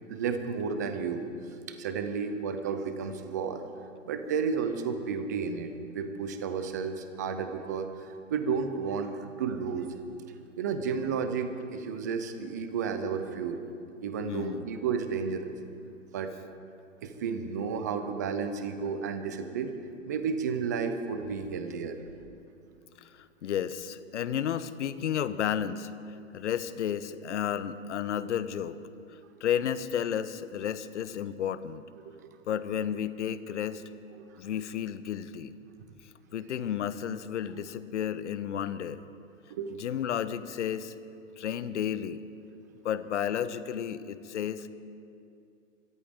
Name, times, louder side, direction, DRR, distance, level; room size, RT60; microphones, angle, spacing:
voice 1, 0.1-1.2 1.7-3.6 4.1-9.9 10.6-13.6 14.0-15.5 16.1-16.3 17.0-19.7 20.0-22.0 32.0-32.4 33.7-33.8 39.6-39.8, right 6 dB, 15° right, 8 dB, 0.4 m, -32 dB
voice 2, 14.2-14.7 23.0-25.9 26.3-28.8 29.4-31.8 32.5-33.8 34.4-35.5 36.3-39.0 39.8-40.9 41.4-42.2 42.8-44.7, left 9 dB, 60° left, 14 dB, 0.9 m, -32 dB
24.5 x 13.5 x 3.6 m, 2.5 s
hypercardioid pair, 145°, 40 cm